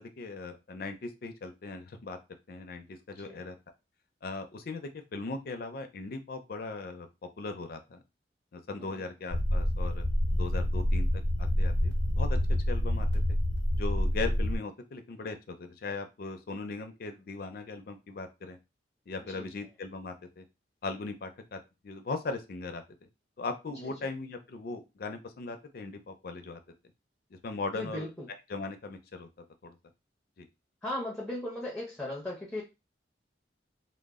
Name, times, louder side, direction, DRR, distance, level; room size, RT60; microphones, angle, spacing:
voice 1, 0.0-2.2 2.5-3.6 4.2-7.1 7.4-8.0 8.5-10.0 10.4-12.4 12.7-13.1 13.8-18.6 19.1-20.4 20.8-22.8 23.4-26.6 27.3-28.1 28.5-29.3 29.6-29.8 30.4-30.5, left 3 dB, 55° left, 7 dB, 0.4 m, -39 dB
sound 1, 9.3-14.6, left 1 dB, 80° right, 1.1 m, -27 dB
voice 2, 19.2-19.7 23.7-24.1 27.7-28.3 30.8-32.6, left 1 dB, 5° left, -3 dB, 0.5 m, -38 dB
2.0 x 2.0 x 3.4 m, 0.26 s
head